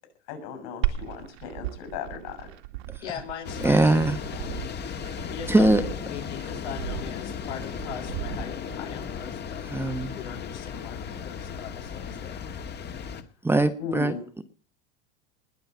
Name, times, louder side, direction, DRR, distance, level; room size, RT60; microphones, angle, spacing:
voice 1, 0.3-2.5 13.8-14.2, left 6 dB, 60° left, 7 dB, 7.3 m, -36 dB
Glass, 0.8-8.8, right 15 dB, 75° right, 2.4 m, -35 dB
voice 2, 3.0-4.6 5.3-9.7 10.1-12.5, left 9 dB, 80° left, 3 dB, 3.5 m, -40 dB
sound 1, 3.4-13.2, left 7 dB, 30° left, 1.9 m, -36 dB
voice 3, 3.6-4.2 5.5-5.8 9.7-10.1 13.4-14.1, right 2 dB, 5° right, 9 dB, 1.2 m, -21 dB
20.5 x 6.9 x 9.5 m, 0.43 s
supercardioid pair, 115°, 34 cm